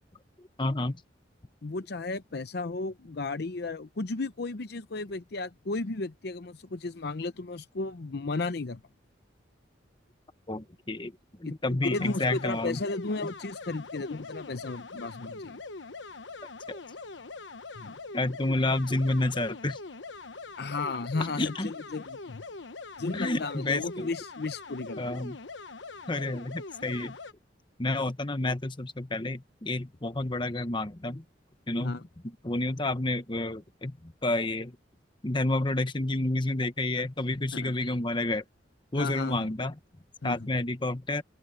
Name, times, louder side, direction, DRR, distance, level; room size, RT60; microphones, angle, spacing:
voice 1, 0.6-1.0 10.5-11.1 11.4-12.8 16.7-16.8 18.1-19.8 21.4-21.7 23.1-24.1 25.0-25.4 26.1-27.2 27.8-31.2 31.7-32.0 32.4-34.8 35.2-38.4 38.9-39.7 40.2-41.2, left 2 dB, 25° left, 1.1 m, -30 dB
voice 2, 1.6-8.8 11.4-11.5 11.8-15.6 17.8-18.0 20.6-22.4 23.0-25.1 31.8-32.0 37.5-37.7 39.0-39.5 40.2-40.5, left 3 dB, 60° left, 0.7 m, -34 dB
sound 1, 11.9-27.3, left 3 dB, 80° left, 1.2 m, -43 dB
head